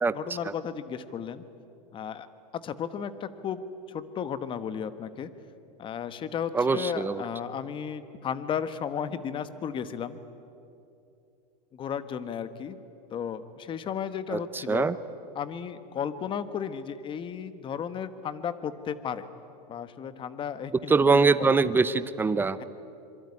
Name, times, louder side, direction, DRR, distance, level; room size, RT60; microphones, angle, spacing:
voice 1, 0.1-1.4 1.9-2.3 2.5-5.3 5.8-10.2 11.7-12.8 13.1-14.9 15.3-19.3 19.7-21.5 22.6-22.7, left 7 dB, 25° left, 13 dB, 1.3 m, -34 dB
voice 2, 6.5-7.2 14.3-14.9 20.9-22.6, right 4 dB, 10° right, 14 dB, 0.7 m, -23 dB
26.0 x 23.5 x 9.8 m, 2.6 s
supercardioid pair, 145°, 21 cm